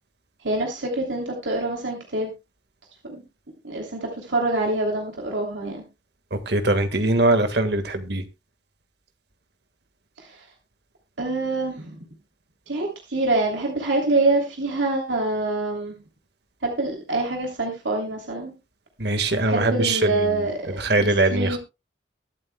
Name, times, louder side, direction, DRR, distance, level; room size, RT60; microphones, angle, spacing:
voice 1, 0.4-2.3 3.1-3.2 3.6-5.8 10.2-10.4 11.2-12.0 12.7-15.9 16.6-18.5 19.4-21.6, right 2 dB, 80° right, -1 dB, 3.0 m, -25 dB
voice 2, 6.3-8.2 19.0-21.6, right 2 dB, 60° right, 8 dB, 1.7 m, -22 dB
23.0 x 7.9 x 2.3 m, 0.26 s
head